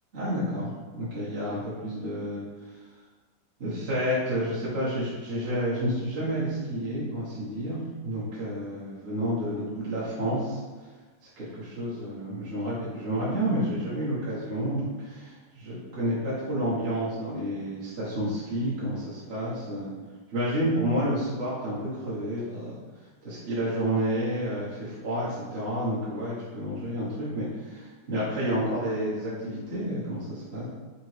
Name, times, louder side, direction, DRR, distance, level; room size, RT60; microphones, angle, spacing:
voice 1, 0.1-2.7 3.6-10.6 11.2-19.9 20.3-22.8 23.2-30.7, equal, 45° right, -10 dB, 1.2 m, -30 dB
3.9 x 3.4 x 3.2 m, 1.3 s
omnidirectional pair, 1.9 m